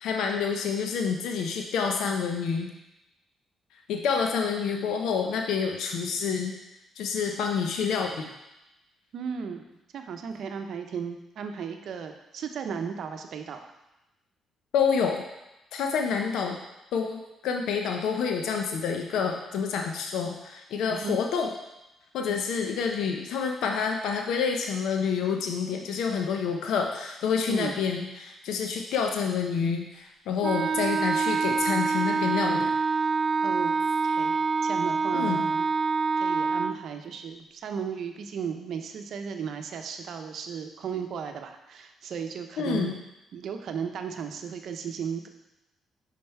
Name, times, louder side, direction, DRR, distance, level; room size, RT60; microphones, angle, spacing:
voice 1, 0.0-2.7 3.9-6.5 7.0-8.3 14.7-15.2 15.7-16.6 16.9-21.5 22.1-32.7 35.1-35.5 42.6-43.0, left 6 dB, 80° left, 3 dB, 0.6 m, -28 dB
voice 2, 9.1-13.7 20.9-21.2 27.5-27.8 33.4-33.7 34.0-34.4 34.6-35.7 36.2-43.0 43.3-45.3, right 6 dB, 65° right, 6 dB, 0.7 m, -35 dB
Wind instrument woodwind instrument, 30.4-36.8, right 4 dB, 45° right, 0.3 m, -26 dB
5.4 x 5.0 x 4.5 m, 0.94 s
cardioid pair, 90°, 0 cm